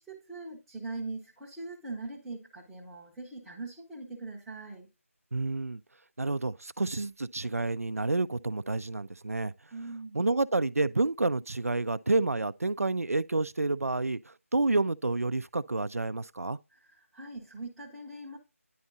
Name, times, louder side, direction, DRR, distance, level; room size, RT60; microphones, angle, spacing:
voice 1, 0.0-4.9 9.7-10.2 16.7-18.4, right 2 dB, ahead, 0.7 m, -41 dB
voice 2, 5.3-5.8 6.2-9.5 10.1-16.6, right 2 dB, 80° right, 0.4 m, -29 dB
10.0 x 4.3 x 2.5 m
figure-of-eight pair, 160°, 8 cm